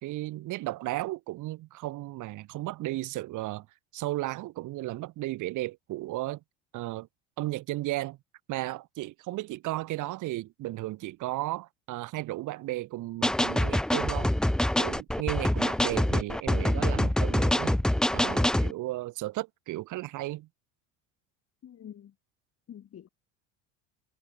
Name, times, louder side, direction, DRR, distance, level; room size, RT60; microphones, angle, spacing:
voice 1, 0.0-3.7 3.9-6.4 6.7-7.1 7.4-8.2 8.5-14.3 14.8-17.8 18.1-20.5, right 17 dB, 55° right, 2.4 m, -34 dB
sound 1, 13.2-18.7, left 1 dB, ahead, 0.5 m, -25 dB
voice 2, 21.6-22.1 22.7-23.1, left 10 dB, 40° left, 4.4 m, -46 dB
hypercardioid pair, 75°, 36 cm